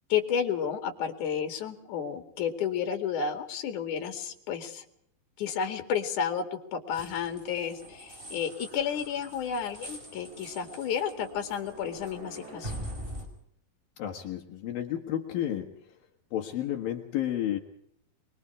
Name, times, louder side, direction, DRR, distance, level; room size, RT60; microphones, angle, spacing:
voice 1, 0.1-4.8 5.4-12.9, left 7 dB, 60° left, 5 dB, 3.6 m, -31 dB
sound 1, 6.9-13.3, right 1 dB, 15° right, 4.6 m, -43 dB
voice 2, 14.0-15.8 16.3-17.6, left 11 dB, 75° left, 2 dB, 3.3 m, -31 dB
25.0 x 22.5 x 4.9 m, 0.70 s
omnidirectional pair, 4.1 m